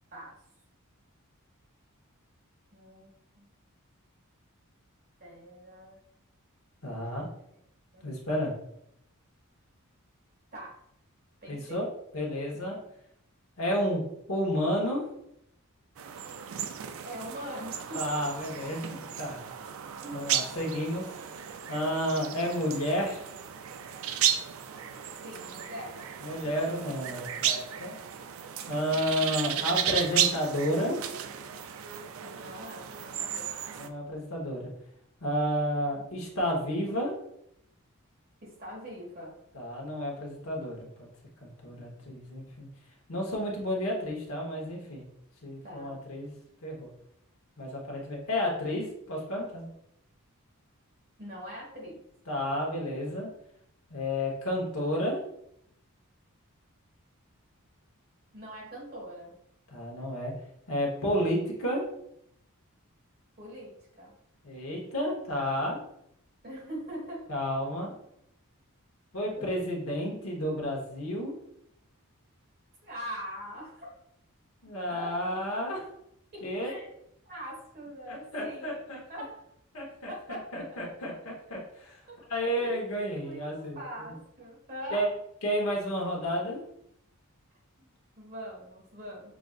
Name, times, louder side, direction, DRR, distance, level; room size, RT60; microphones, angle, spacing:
voice 1, 2.7-3.1 3.3-3.5 5.2-6.0 7.1-7.3 7.9-8.1 10.5-10.8 11.4-11.8 12.5-12.9 17.0-18.1 20.0-20.3 25.2-26.1 32.2-33.7 38.4-39.4 45.6-45.9 51.2-52.0 58.3-59.3 63.4-64.1 66.4-67.3 69.3-69.5 72.8-73.9 74.9-75.2 76.3-76.9 77.2-78.8 79.1-79.5 80.1-80.5 82.1-82.8 83.2-85.1 87.8-89.4, equal, 45° right, -3 dB, 1.5 m, -42 dB
voice 2, 6.8-7.3 8.0-8.5 11.5-11.9 12.1-12.8 13.6-14.0 14.3-15.0 17.9-19.4 20.1-21.1 21.7-23.3 26.2-27.9 28.7-31.0 33.8-34.7 35.2-37.1 39.5-41.1 41.4-42.7 43.1-45.0 45.4-46.3 46.6-46.9 47.6-49.7 52.3-53.3 53.9-55.2 59.7-60.3 60.7-61.8 64.4-65.8 67.3-67.9 69.1-71.3 74.6-75.9 76.4-76.8 78.1-79.0 79.7-82.0 82.3-84.1 84.9-85.1 85.4-86.6, equal, 65° left, -1 dB, 1.1 m, -31 dB
sound 1, 16.0-33.9, right 9 dB, 65° right, 0.3 m, -34 dB
6.0 x 2.5 x 2.4 m, 0.75 s
head